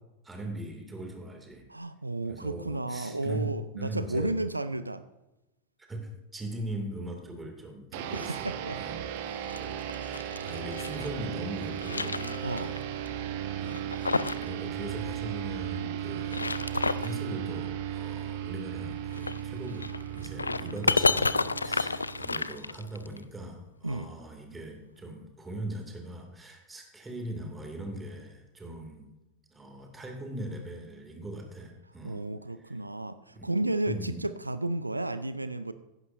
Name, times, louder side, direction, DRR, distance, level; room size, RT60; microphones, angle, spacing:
voice 1, 0.2-1.6 2.3-4.4 5.9-8.5 8.8-9.0 9.6-9.7 10.0-12.9 13.6-16.6 17.0-29.1 29.5-32.3 32.6-32.8 33.3-33.5 33.9-34.3, right 1 dB, 10° right, 3 dB, 2.4 m, -40 dB
voice 2, 1.7-5.0 8.1-8.8 12.4-12.7 23.8-24.1 32.0-35.7, right 2 dB, 85° right, 13 dB, 0.4 m, -32 dB
sound 1, 7.9-22.7, right 10 dB, 50° right, 1.0 m, -36 dB
sound 2, 9.3-11.1 11.5-12.8 13.1-13.2 13.7-14.5 14.7-14.8 16.1-17.2 19.1-23.2, left 3 dB, 80° left, 0.3 m, -30 dB
15.5 x 11.0 x 2.6 m, 0.99 s
figure-of-eight pair, 90°, 0 cm